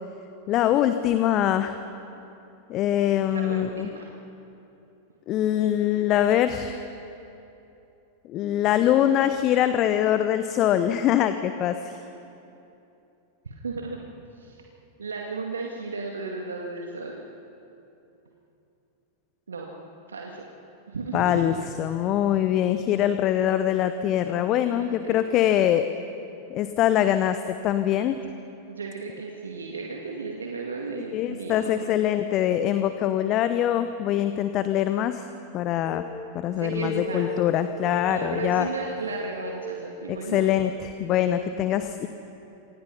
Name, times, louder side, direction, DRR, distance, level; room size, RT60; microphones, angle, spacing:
voice 1, 0.5-1.8 2.7-3.9 5.3-6.8 8.3-11.9 21.1-25.9 26.5-28.2 31.1-35.3 35.5-36.0 36.3-38.7 40.1-42.1, left 11 dB, 35° left, 10 dB, 0.9 m, -23 dB
voice 2, 3.3-4.0 13.4-14.0 14.4-14.6 15.0-17.2 19.5-19.7 20.1-20.5 20.9-21.4 24.6-25.2 28.7-31.9 36.6-37.5 38.1-40.4, right 4 dB, 70° right, 0 dB, 2.1 m, -34 dB
sound 1, 35.8-36.1 36.5-40.4, left 2 dB, 20° right, 4.0 m, -36 dB
28.0 x 25.5 x 5.7 m, 2.8 s
figure-of-eight pair, 90°, 0 cm